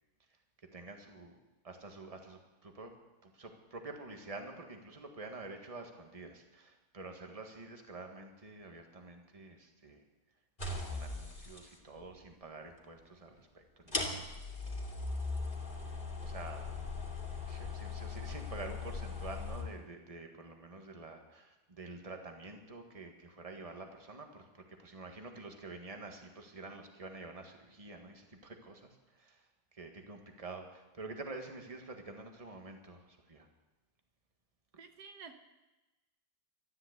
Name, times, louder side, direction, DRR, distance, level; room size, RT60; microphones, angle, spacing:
voice 1, 0.7-1.4 1.6-2.9 3.2-10.0 10.7-14.8 16.2-16.7 17.5-33.5, right 3 dB, 20° right, 4 dB, 1.7 m, -48 dB
sound 1, 10.6-11.7 12.9-13.0 13.9-19.6, left 3 dB, 30° left, 2.8 m, -39 dB
voice 2, 34.8-35.4, right 5 dB, 80° right, 6 dB, 1.7 m, -50 dB
13.0 x 11.5 x 8.1 m, 1.1 s
omnidirectional pair, 1.7 m